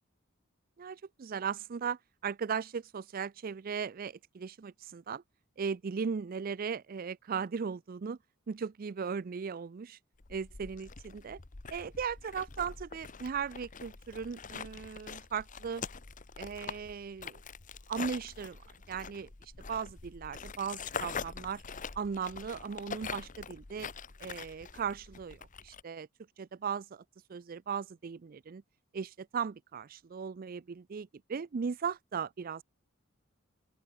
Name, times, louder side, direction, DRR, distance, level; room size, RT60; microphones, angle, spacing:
voice 1, 0.8-5.2 5.6-8.2 8.5-10.0 10.3-11.4 11.7-15.8 16.4-17.4 17.9-18.6 18.9-19.3 19.7-21.6 22.0-23.9 24.2-26.1 26.4-27.0 27.3-28.6 28.9-32.6, right 6 dB, 45° right, 0.4 m, -37 dB
sound 1, 10.2-25.8, left 5 dB, 40° left, 1.0 m, -44 dB
open air
head